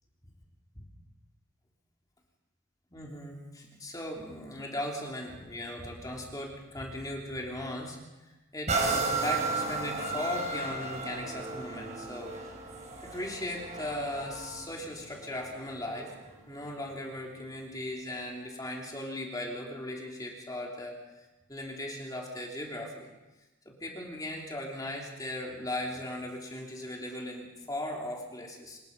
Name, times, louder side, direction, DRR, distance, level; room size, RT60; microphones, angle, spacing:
voice 1, 2.9-8.0 8.5-12.3 13.0-16.1 16.5-23.1 23.6-28.8, left 1 dB, 15° left, -1 dB, 3.3 m, -38 dB
sound 1, 8.7-16.3 16.9-17.0, right 3 dB, 35° right, 4.7 m, -34 dB
25.5 x 21.0 x 5.5 m, 1.1 s
head